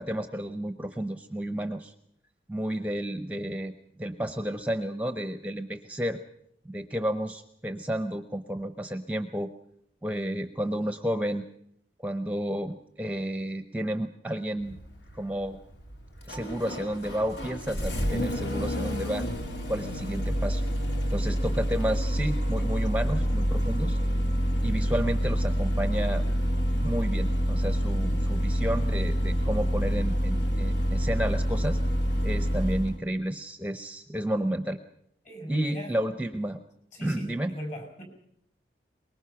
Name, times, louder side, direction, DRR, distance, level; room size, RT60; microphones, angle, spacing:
voice 1, 0.0-1.9 2.5-3.7 4.0-6.2 6.6-9.5 10.0-11.4 12.0-14.8 15.1-15.6 16.3-19.3 19.7-20.6 21.1-24.0 24.6-26.2 26.8-31.8 32.2-34.8 35.5-36.6 37.0-37.5, right 1 dB, 10° right, 8 dB, 0.7 m, -31 dB
Engine starting, 14.6-33.0, equal, 80° left, 2.6 m, -27 dB
voice 2, 35.2-35.9 36.9-38.0, equal, 45° left, 4 dB, 6.6 m, -37 dB
24.0 x 21.5 x 5.9 m, 0.71 s
head